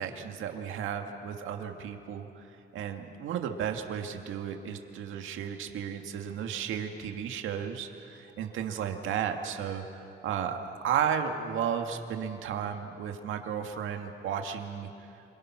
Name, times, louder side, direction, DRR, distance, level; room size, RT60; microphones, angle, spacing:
voice 1, 0.0-2.4 2.7-14.9, right 8 dB, 80° right, 4 dB, 2.0 m, -34 dB
27.0 x 26.5 x 6.1 m, 2.7 s
cardioid pair, 90°, 20 cm